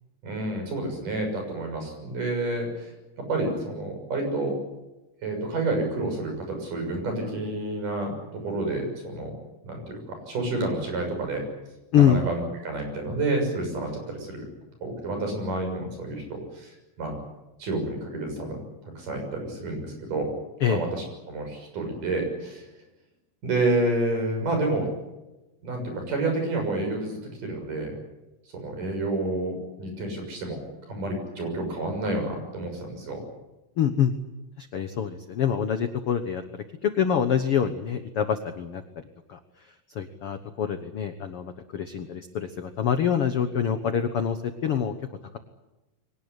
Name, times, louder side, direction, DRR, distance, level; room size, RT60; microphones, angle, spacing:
voice 1, 0.2-2.9 3.3-4.6 5.2-9.4 9.6-11.4 11.9-14.4 14.8-17.2 17.6-18.6 19.0-20.3 20.7-22.7 23.4-24.9 25.6-28.0 28.5-30.6 30.9-33.2, right 2 dB, 55° right, 4 dB, 8.1 m, -29 dB
voice 2, 11.9-12.2 20.6-20.8 33.8-34.1 34.6-36.4 36.8-39.0 39.3-39.4 39.9-44.9, left 8 dB, 80° left, 9 dB, 1.2 m, -25 dB
23.5 x 18.5 x 9.8 m, 1.0 s
omnidirectional pair, 4.5 m